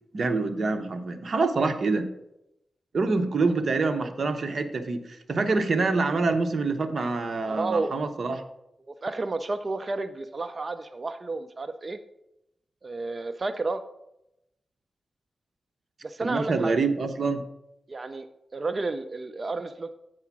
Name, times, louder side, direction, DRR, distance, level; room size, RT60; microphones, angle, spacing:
voice 1, 0.1-2.1 2.9-8.4 16.2-17.4, right 3 dB, 55° right, 6 dB, 0.9 m, -26 dB
voice 2, 7.5-7.9 9.0-12.0 12.8-13.8 16.0-16.8 17.9-18.3 18.5-19.9, right 3 dB, 35° right, 9 dB, 0.4 m, -31 dB
8.2 x 4.8 x 6.0 m, 0.86 s
wide cardioid pair, 110°, 0 cm